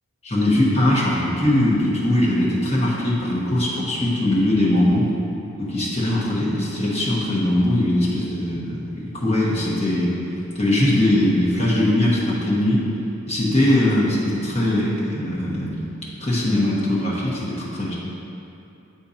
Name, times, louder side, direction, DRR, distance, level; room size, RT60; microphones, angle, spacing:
voice 1, 0.2-5.1 5.6-10.1 10.5-12.8 13.3-15.8 16.2-17.9, left 1 dB, 30° left, -6 dB, 1.1 m, -21 dB
7.4 x 2.8 x 5.0 m, 2.9 s
head